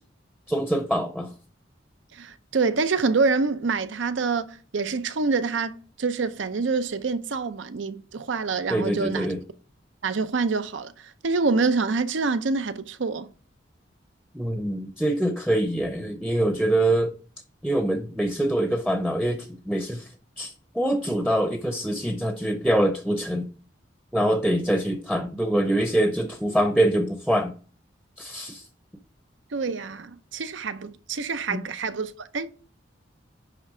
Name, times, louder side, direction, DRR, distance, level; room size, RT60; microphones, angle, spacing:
voice 1, 0.5-1.3 8.7-9.4 14.3-17.1 17.6-20.1 20.4-23.5 24.1-27.5 28.2-28.6 31.5-31.6, right 1 dB, ahead, 0.6 m, -24 dB
voice 2, 2.1-9.3 10.0-13.3 29.5-32.5, right 4 dB, 85° right, 0.6 m, -26 dB
10.0 x 3.4 x 4.8 m
head